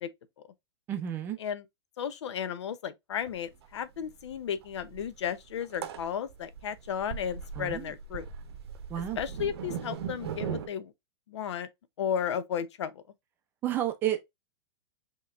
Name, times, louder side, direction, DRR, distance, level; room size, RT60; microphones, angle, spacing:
voice 1, 0.9-1.4 7.6-7.9 8.9-9.2 13.6-14.2, right 11 dB, 15° right, 0.5 m, -31 dB
voice 2, 2.0-8.3 9.2-10.9 11.3-11.7 12.0-12.9, left 8 dB, 75° left, 0.7 m, -34 dB
sound 1, 3.2-3.4 3.6-3.7 4.0-10.7, right 8 dB, 65° right, 0.8 m, -39 dB
5.5 x 3.0 x 2.4 m
supercardioid pair, 175°, 15 cm